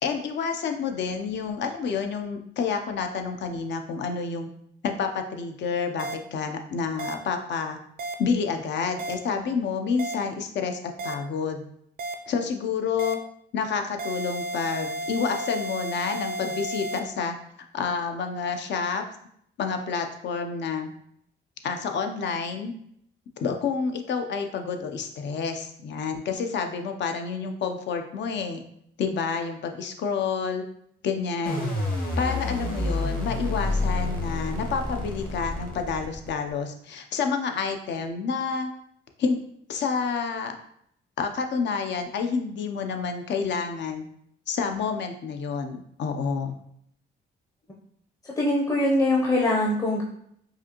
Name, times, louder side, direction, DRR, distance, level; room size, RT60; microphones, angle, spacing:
voice 1, 0.0-4.5 4.8-7.8 8.2-11.6 12.3-13.2 13.5-17.4 17.7-19.0 19.6-20.9 21.6-22.7 23.4-28.6 29.0-30.6 31.0-31.7 32.2-38.7 39.2-39.4 39.7-40.5 41.2-44.0 44.5-46.6, left 5 dB, 65° left, 5 dB, 0.6 m, -29 dB
sound 1, 6.0-6.1 7.0-7.1 8.0-8.1 9.0-9.1 10.0-10.1 11.0-11.1 12.0-12.1 13.0-13.1 14.0-17.0, right 1 dB, 50° right, 0.4 m, -32 dB
sound 2, 31.5-36.5, left 2 dB, 45° left, 1.2 m, -28 dB
voice 2, 48.4-50.0, left 1 dB, 15° left, -2 dB, 0.6 m, -22 dB
4.9 x 2.6 x 2.9 m, 0.70 s
cardioid pair, 90°, 20 cm